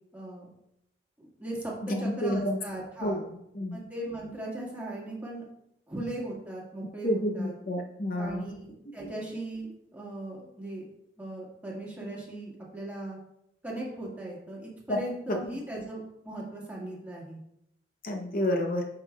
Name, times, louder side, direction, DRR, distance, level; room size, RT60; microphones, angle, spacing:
voice 1, 0.1-0.5 1.2-1.7 2.0-3.2 3.7-5.4 5.9-7.5 8.1-10.8 11.2-13.2 13.6-17.4, right 1 dB, 10° right, -4 dB, 1.8 m, -38 dB
voice 2, 1.9-2.6 3.0-3.1 3.5-3.8 7.0-8.5 9.0-9.1 14.9-15.0 18.0-18.8, equal, 50° left, 2 dB, 0.7 m, -29 dB
8.8 x 5.7 x 2.3 m, 0.80 s
head